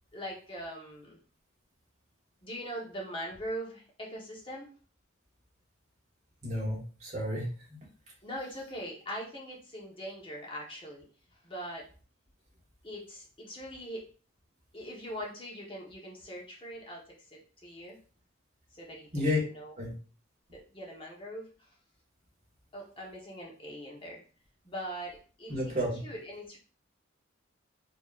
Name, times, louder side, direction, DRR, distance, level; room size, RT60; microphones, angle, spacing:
voice 1, 0.1-1.2 2.4-4.7 8.2-11.0 11.4-11.8 12.8-14.1 14.7-17.0 17.3-18.0 18.7-19.7 20.5-21.7 22.7-24.2 24.6-25.7 26.0-26.6, equal, 25° left, -3 dB, 1.2 m, -41 dB
voice 2, 6.4-7.5 19.1-19.4 19.8-19.9 25.5-26.0, left 1 dB, 35° right, -4 dB, 1.5 m, -31 dB
4.7 x 3.0 x 2.5 m, 0.39 s
head